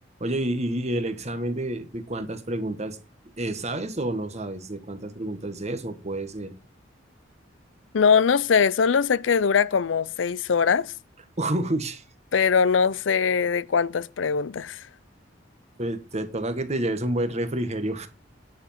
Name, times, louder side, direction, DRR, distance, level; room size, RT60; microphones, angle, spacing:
voice 1, 0.2-3.0 3.4-6.5 11.4-12.0 15.8-18.1, right 1 dB, 35° right, 1.6 m, -29 dB
voice 2, 7.9-10.9 12.3-14.8, left 6 dB, 75° left, 0.5 m, -21 dB
10.5 x 7.1 x 5.7 m
head